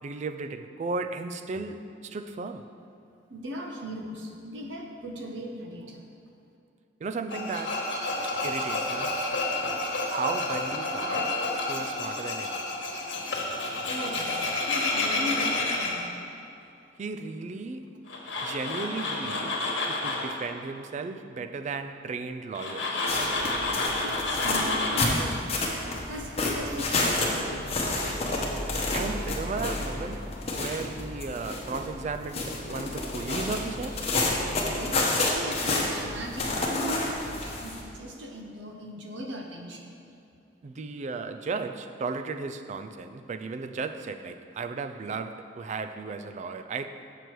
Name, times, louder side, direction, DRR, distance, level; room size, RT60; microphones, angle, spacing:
voice 1, 0.0-2.7 7.0-7.9 8.4-9.1 10.1-11.4 11.7-12.6 17.0-17.8 18.4-23.1 28.9-34.1 40.6-46.9, right 4 dB, 40° right, 0.3 m, -35 dB
voice 2, 3.3-6.0 13.9-14.4 14.7-16.2 23.6-25.6 26.1-28.2 34.7-39.9, equal, 75° right, 0.9 m, -38 dB
Tools, 7.3-15.9 18.1-20.3 22.6-25.1, left 2 dB, 90° left, 1.3 m, -30 dB
sound 1, 23.1-37.8, left 2 dB, 35° left, 0.9 m, -30 dB
6.7 x 6.1 x 4.6 m
head